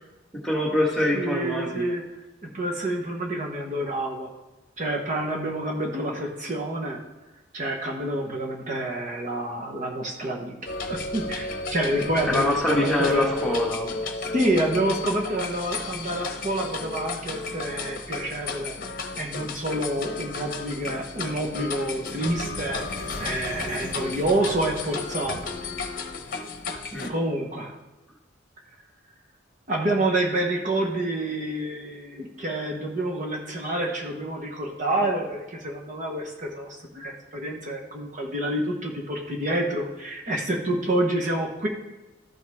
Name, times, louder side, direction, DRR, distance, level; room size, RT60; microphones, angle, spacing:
voice 1, 0.3-1.8 12.3-13.9 26.9-27.1, left 1 dB, 5° left, -3 dB, 1.5 m, -24 dB
voice 2, 1.1-2.0 2.4-4.3 4.8-7.0 7.5-10.5 10.9-13.3 14.3-18.8 19.2-25.4 27.1-27.7 29.7-41.7, right 1 dB, 40° right, 0 dB, 1.1 m, -28 dB
sound 1, 10.7-27.1, left 3 dB, 45° left, 0.9 m, -33 dB
13.5 x 5.4 x 3.5 m, 1.1 s
head